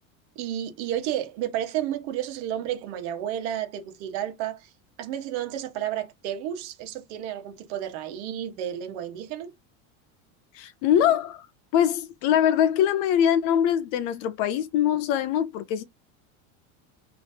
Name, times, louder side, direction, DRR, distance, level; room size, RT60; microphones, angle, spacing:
voice 1, 0.3-4.7 5.0-9.5, right 11 dB, 55° right, 1.2 m, -31 dB
voice 2, 10.6-11.4 11.7-15.8, left 10 dB, 45° left, 0.4 m, -23 dB
4.0 x 3.0 x 2.7 m
cardioid pair, 165°, 40 cm